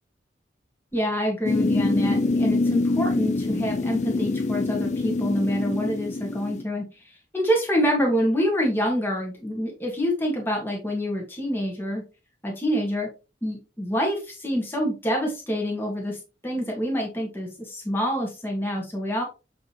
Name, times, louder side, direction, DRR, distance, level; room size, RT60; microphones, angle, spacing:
voice 1, 0.9-6.8 7.3-12.0 12.4-13.1 13.4-19.2, equal, 10° left, 0 dB, 1.9 m, -26 dB
sound 1, 1.4-6.6, left 2 dB, 40° left, 0.4 m, -25 dB
7.6 x 5.3 x 3.1 m, 0.29 s
head